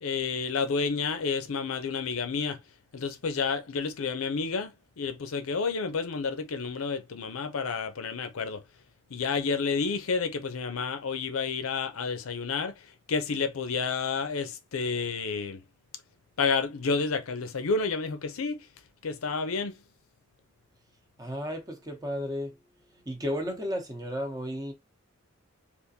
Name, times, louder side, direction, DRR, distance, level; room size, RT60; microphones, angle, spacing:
voice 1, 0.0-2.6 2.9-8.6 9.1-15.6 16.4-18.6 19.0-19.8, left 5 dB, 80° left, 0.6 m, -30 dB
voice 2, 21.2-22.5 23.1-24.7, equal, 20° right, 0.8 m, -33 dB
3.6 x 2.5 x 2.7 m
head